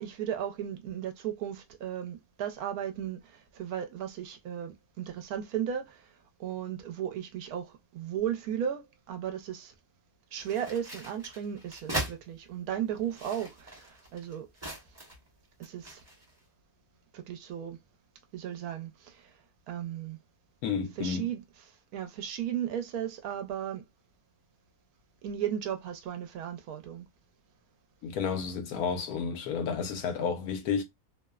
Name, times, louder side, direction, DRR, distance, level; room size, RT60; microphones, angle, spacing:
voice 1, 0.0-6.1 6.4-9.7 10.3-14.5 15.6-16.0 17.1-17.8 18.3-19.3 19.7-20.2 21.0-21.4 21.9-23.8 25.2-27.1, right 9 dB, 75° right, 1.1 m, -35 dB
sound 1, 10.4-12.2 12.9-15.3 15.6-16.3, right 1 dB, 15° right, 0.7 m, -39 dB
voice 2, 20.6-21.3 28.0-30.8, left 6 dB, 80° left, 1.1 m, -31 dB
2.9 x 2.0 x 2.2 m
omnidirectional pair, 1.6 m